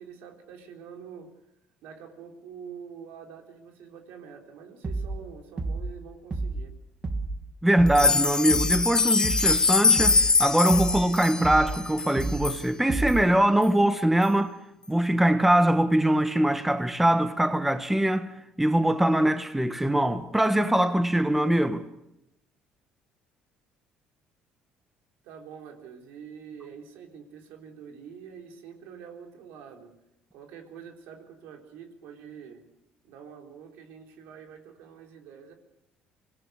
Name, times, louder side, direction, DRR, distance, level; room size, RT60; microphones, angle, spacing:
voice 1, 0.0-1.3 1.8-6.7 25.2-29.9 30.3-32.6 33.0-35.5, right 7 dB, 80° right, 3.9 m, -46 dB
sound 1, 4.8-5.2 5.6-6.0 6.3-6.7 7.0-7.4 7.8-8.1 8.5-8.9 9.2-9.6 10.0-10.3 10.7-11.1 11.4-11.8 12.2-12.5 12.9-13.3, right 3 dB, 30° right, 2.1 m, -30 dB
voice 2, 7.6-14.5 14.9-18.3 18.6-21.8, right 1 dB, 5° right, 1.3 m, -22 dB
sound 2, 7.9-12.6 13.1-13.2 13.6-13.7 14.2-14.3, left 4 dB, 25° left, 0.9 m, -23 dB
25.5 x 17.5 x 6.5 m
cardioid pair, 95°, 3 cm